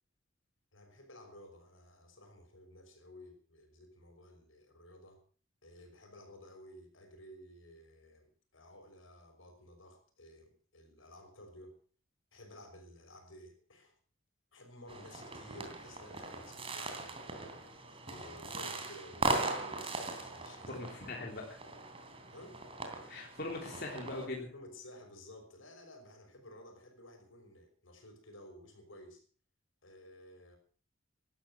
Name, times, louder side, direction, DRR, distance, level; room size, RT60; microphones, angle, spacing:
voice 1, 0.7-5.2 5.6-11.8 12.3-13.9 14.5-17.7 18.1-21.1 22.3-22.6 24.5-29.2 29.8-30.6, left 1 dB, 85° left, 6 dB, 5.9 m, -54 dB
sound 1, 14.9-24.3, right 2 dB, 30° right, 3.1 m, -39 dB
voice 2, 20.7-21.4 23.1-24.5, left 2 dB, 55° left, 0 dB, 3.3 m, -41 dB
18.0 x 12.5 x 6.1 m, 0.41 s
head